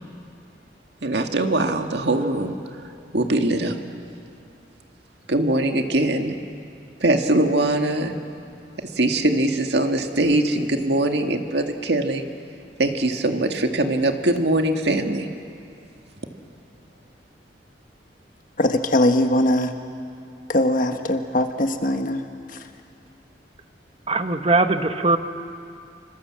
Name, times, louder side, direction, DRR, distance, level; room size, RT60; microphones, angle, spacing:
voice 1, 1.0-2.6 3.1-3.8 5.3-6.4 7.0-8.2 8.8-12.2 12.8-15.3, right 1 dB, 70° right, 1.9 m, -22 dB
voice 2, 18.6-19.7 20.5-22.2 22.5-22.6, left 1 dB, 50° left, 1.5 m, -21 dB
voice 3, 24.1-25.2, right 3 dB, 35° right, 1.2 m, -20 dB
26.5 x 25.5 x 7.6 m
head